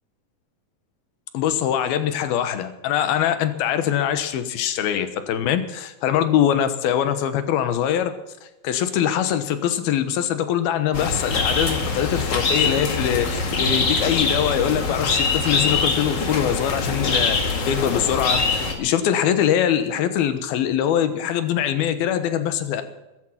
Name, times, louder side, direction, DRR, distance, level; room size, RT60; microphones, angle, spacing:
voice 1, 1.3-8.1 8.6-22.8, left 9 dB, 85° left, 10 dB, 3.1 m, -23 dB
sound 1, 10.9-18.7, left 4 dB, 40° left, 1.7 m, -23 dB
15.0 x 11.0 x 7.4 m, 1.0 s
omnidirectional pair, 4.3 m